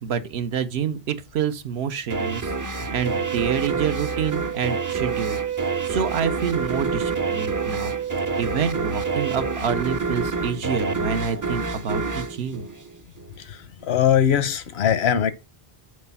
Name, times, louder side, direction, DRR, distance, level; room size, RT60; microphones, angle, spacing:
voice 1, 0.0-5.4 5.8-7.9 8.4-12.6, right 7 dB, 85° right, 1.0 m, -27 dB
sound 1, 2.1-13.4, right 3 dB, 30° right, 0.3 m, -28 dB
Wind instrument woodwind instrument, 3.0-9.6, right 11 dB, 55° right, 1.0 m, -30 dB
voice 2, 13.4-15.3, left 9 dB, 90° left, 1.0 m, -21 dB
6.5 x 4.3 x 5.4 m
omnidirectional pair, 1.0 m